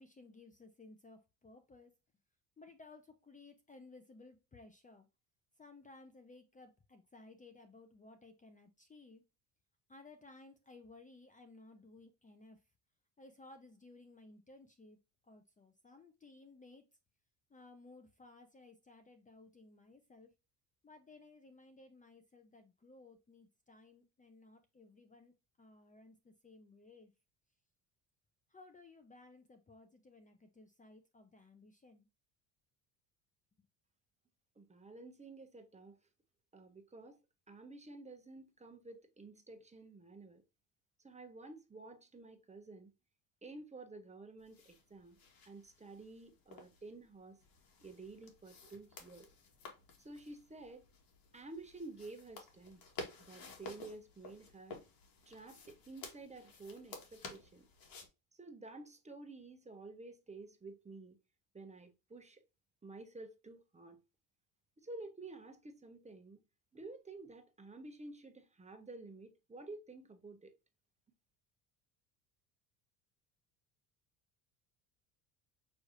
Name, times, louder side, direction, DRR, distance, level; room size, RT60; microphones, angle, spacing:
voice 1, 0.0-1.9 2.6-5.1 5.6-9.2 9.9-12.6 13.2-15.0 15.3-16.8 17.5-20.3 20.8-27.1 28.5-32.1, left 3 dB, 20° left, 0.8 m, -58 dB
voice 2, 34.6-36.0 36.5-37.2 37.5-40.4 41.0-42.9 43.4-45.2 45.5-47.4 47.8-49.3 50.0-50.8 51.3-52.8 53.2-54.8 55.3-57.6 58.4-61.2 61.5-62.4 62.8-64.0 64.8-66.4 66.7-70.5, right 2 dB, 15° right, 1.0 m, -51 dB
sound 1, 44.4-58.1, left 3 dB, 55° left, 1.9 m, -53 dB
6.2 x 3.3 x 2.6 m
supercardioid pair, 95°, 41 cm